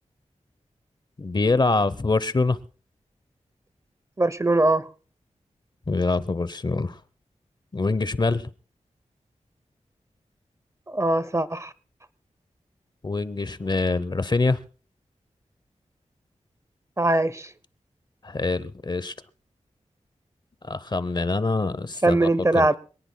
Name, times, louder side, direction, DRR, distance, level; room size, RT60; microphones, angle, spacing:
voice 1, 1.2-2.6 5.9-7.0 7.7-8.5 13.0-14.6 18.2-19.1 20.6-22.3 22.5-22.7, left 3 dB, 35° left, 0.8 m, -24 dB
voice 2, 4.2-4.9 10.9-11.7 17.0-17.5 22.0-22.7, right 2 dB, 25° right, 0.6 m, -21 dB
26.0 x 18.5 x 2.2 m
wide cardioid pair, 105°, 13 cm